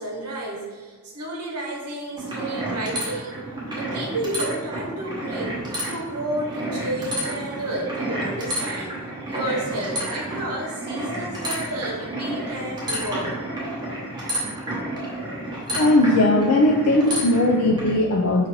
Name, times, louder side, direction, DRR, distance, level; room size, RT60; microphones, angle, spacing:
voice 1, 0.0-3.4 3.7-9.0 9.3-13.3, right 1 dB, 85° right, -2 dB, 0.8 m, -31 dB
sound 1, 2.2-17.9, right 1 dB, 20° right, 0.8 m, -30 dB
voice 2, 15.8-18.5, left 1 dB, 85° left, 0 dB, 0.4 m, -18 dB
5.2 x 2.4 x 2.9 m, 1.4 s
head